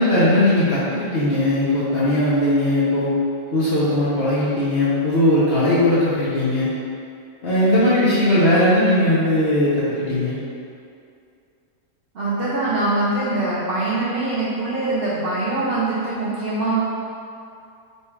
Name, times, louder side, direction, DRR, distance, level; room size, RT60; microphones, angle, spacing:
voice 1, 0.0-3.1 3.5-6.7 7.4-10.4, left 1 dB, 55° left, -10 dB, 0.7 m, -18 dB
voice 2, 12.1-16.8, right 2 dB, 70° right, -8 dB, 0.5 m, -23 dB
4.2 x 2.3 x 4.4 m, 2.5 s
omnidirectional pair, 1.8 m